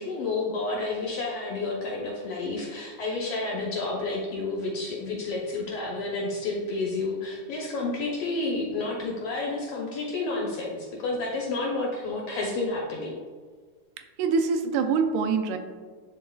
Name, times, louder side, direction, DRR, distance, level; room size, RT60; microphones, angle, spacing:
voice 1, 0.0-13.2, left 3 dB, 65° left, -2 dB, 1.7 m, -30 dB
voice 2, 14.2-15.6, right 5 dB, 80° right, 5 dB, 1.9 m, -24 dB
11.0 x 4.0 x 2.3 m, 1.5 s
omnidirectional pair, 3.6 m